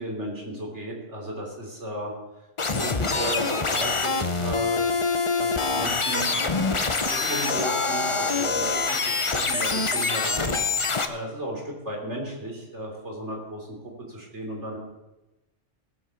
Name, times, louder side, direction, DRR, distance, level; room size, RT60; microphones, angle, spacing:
voice 1, 0.0-2.1 2.7-4.9 5.4-6.5 7.1-10.6 11.1-13.8 14.1-14.8, right 1 dB, 75° right, 0 dB, 3.9 m, -34 dB
sound 1, 2.6-11.0, left 4 dB, 30° left, 0.8 m, -25 dB
17.0 x 8.0 x 7.1 m, 1.0 s
omnidirectional pair, 1.2 m